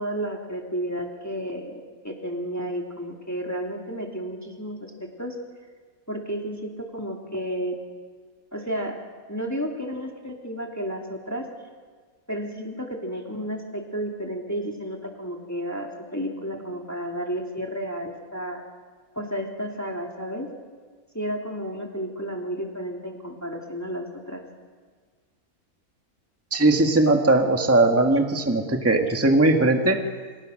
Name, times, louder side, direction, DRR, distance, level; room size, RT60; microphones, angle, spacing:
voice 1, 0.0-5.4 6.1-7.8 8.5-9.0 9.3-11.5 12.3-18.6 19.1-20.5 21.1-24.4, equal, 10° left, 1 dB, 2.8 m, -32 dB
voice 2, 26.5-30.0, right 2 dB, 10° right, 3 dB, 1.7 m, -19 dB
29.5 x 26.5 x 6.5 m, 1.5 s
omnidirectional pair, 1.6 m